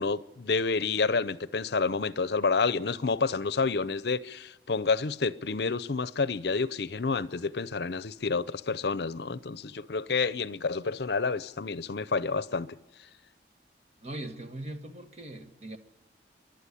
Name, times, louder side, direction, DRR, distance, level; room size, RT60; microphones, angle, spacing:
voice 1, 0.0-12.7, left 4 dB, 65° left, 0.7 m, -29 dB
voice 2, 14.0-15.8, right 1 dB, 35° right, 1.7 m, -40 dB
29.0 x 12.0 x 10.0 m
head